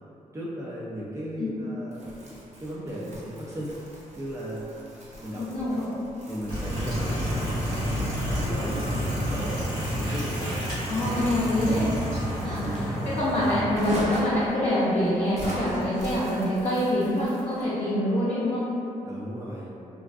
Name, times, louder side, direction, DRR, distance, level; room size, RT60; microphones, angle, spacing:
voice 1, 0.3-3.7 4.2-4.7 5.2-6.0 6.3-9.6 9.9-10.6 12.3-13.2 19.0-19.8, equal, 20° right, -7 dB, 0.4 m, -36 dB
Crumpling crinkling, 1.9-17.7, equal, 50° right, 0.7 m, -41 dB
voice 2, 5.3-5.8 10.9-11.8 12.4-18.7, left 1 dB, 50° left, -10 dB, 0.6 m, -25 dB
sound 1, 6.5-13.6, equal, 85° right, 0.8 m, -29 dB
2.4 x 2.3 x 2.3 m, 2.7 s
cardioid pair, 65°, 14 cm